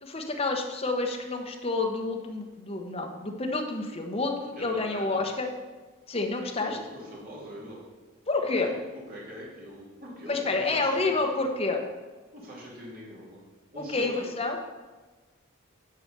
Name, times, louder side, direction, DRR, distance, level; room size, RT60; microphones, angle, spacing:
voice 1, 0.0-5.5 6.1-6.8 8.3-8.7 10.3-11.8 13.8-14.6, left 3 dB, 30° left, 2 dB, 1.0 m, -29 dB
voice 2, 4.5-5.2 6.6-7.9 8.5-11.5 12.3-13.4 13.7-14.2, equal, 45° right, -5 dB, 2.6 m, -43 dB
9.5 x 5.0 x 6.6 m, 1.3 s
head